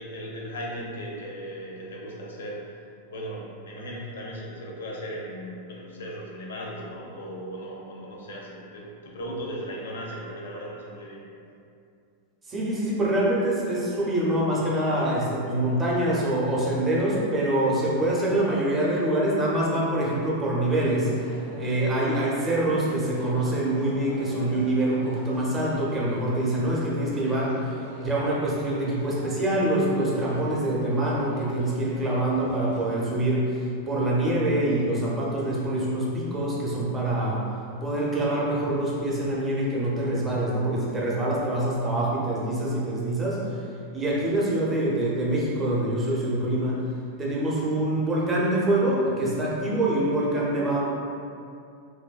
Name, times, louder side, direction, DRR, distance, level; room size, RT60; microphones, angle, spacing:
voice 1, 0.0-11.3, equal, 65° left, -2 dB, 0.5 m, -37 dB
voice 2, 12.5-21.1 21.6-37.4 37.8-43.4 43.9-46.8 47.2-50.8, right 1 dB, 20° right, -5 dB, 0.6 m, -25 dB
sound 1, 21.1-33.0, equal, 65° right, 0.6 m, -44 dB
3.3 x 2.2 x 2.3 m, 2.4 s
figure-of-eight pair, 90°, 0 cm